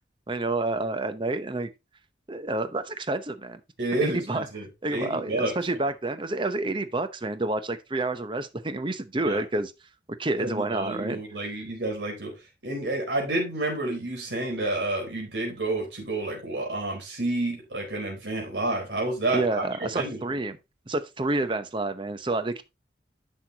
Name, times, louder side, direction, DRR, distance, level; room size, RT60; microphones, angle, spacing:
voice 1, 0.3-1.7 2.3-3.6 4.0-4.5 4.8-9.7 10.2-11.2 19.3-20.6 20.9-22.6, right 2 dB, 30° right, 0.8 m, -29 dB
voice 2, 3.8-5.5 9.2-9.4 10.4-12.3 12.6-19.6 19.9-20.2, right 2 dB, 80° right, 4.3 m, -29 dB
10.0 x 6.5 x 2.9 m
head